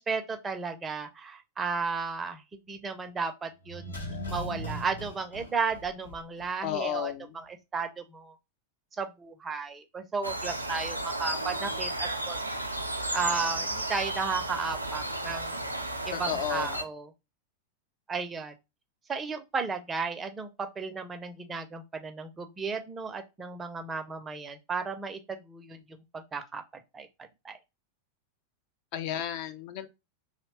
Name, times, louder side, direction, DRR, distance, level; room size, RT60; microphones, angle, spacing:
voice 1, 0.0-8.4 8.9-12.4 13.1-15.6 16.1-17.1 18.1-18.5 19.1-27.1 27.4-27.6, right 5 dB, 20° right, 0.4 m, -34 dB
sound 1, 3.6-6.5 6.7-6.8, equal, 80° left, 0.7 m, -39 dB
voice 2, 6.6-7.3 16.1-16.7 28.9-29.9, left 10 dB, 45° left, 0.3 m, -32 dB
sound 2, 10.2-16.8, right 1 dB, 85° right, 0.3 m, -33 dB
2.7 x 2.1 x 2.9 m
figure-of-eight pair, 90°, 0 cm